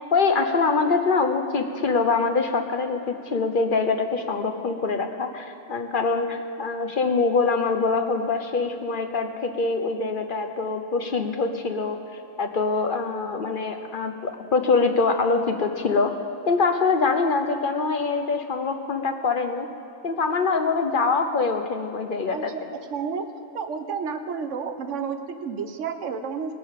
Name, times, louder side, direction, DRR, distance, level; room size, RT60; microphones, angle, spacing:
voice 1, 0.1-12.0 12.4-16.1 16.5-19.7 20.0-22.5, left 4 dB, 45° left, 6 dB, 0.9 m, -24 dB
voice 2, 22.3-22.6 22.9-23.3 23.5-26.5, right 6 dB, 70° right, 8 dB, 1.2 m, -31 dB
21.0 x 11.0 x 3.7 m, 2.8 s
omnidirectional pair, 1.3 m